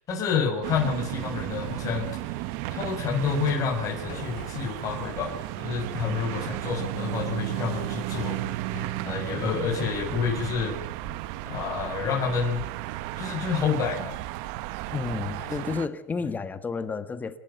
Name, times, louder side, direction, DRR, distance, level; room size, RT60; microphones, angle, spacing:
voice 1, 0.1-2.4 2.7-8.4 9.0-10.8 11.5-12.6 13.2-14.2, left 6 dB, 35° left, 6.9 m, -29 dB
sound 1, 0.6-15.9, right 16 dB, 60° right, 1.4 m, -34 dB
sound 2, 2.7-10.8 11.0-11.3 11.7-12.0 12.4-13.6, left 8 dB, 55° left, 5.9 m, -47 dB
voice 2, 14.9-17.4, left 4 dB, 15° left, 1.5 m, -31 dB
28.5 x 12.0 x 9.0 m
supercardioid pair, 120°, 9 cm